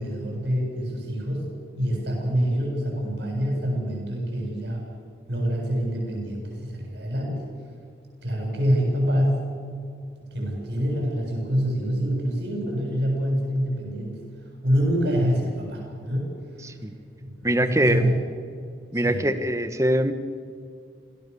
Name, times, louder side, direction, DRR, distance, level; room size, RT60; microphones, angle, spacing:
voice 1, 0.0-1.5 1.8-4.9 5.3-7.5 8.2-9.5 10.3-14.2 14.6-16.3 17.2-18.1 18.9-19.2, equal, 70° right, 0 dB, 7.6 m, -26 dB
voice 2, 16.6-16.9 17.4-18.1 18.9-20.1, right 1 dB, 15° right, 10 dB, 1.3 m, -23 dB
27.5 x 17.5 x 7.1 m, 2.3 s
head